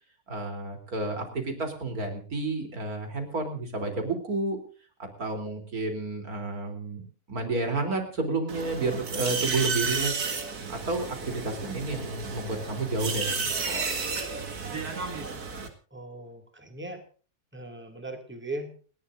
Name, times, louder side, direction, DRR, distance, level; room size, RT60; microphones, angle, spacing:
voice 1, 0.3-4.6 5.0-10.3 10.7-13.9, right 3 dB, 75° right, 5 dB, 3.9 m, -31 dB
sound 1, 8.5-15.7, right 4 dB, 90° right, 2.5 m, -32 dB
voice 2, 15.9-17.0 17.5-18.7, right 1 dB, 5° right, 4 dB, 2.3 m, -38 dB
30.0 x 11.5 x 2.6 m, 0.38 s
omnidirectional pair, 1.6 m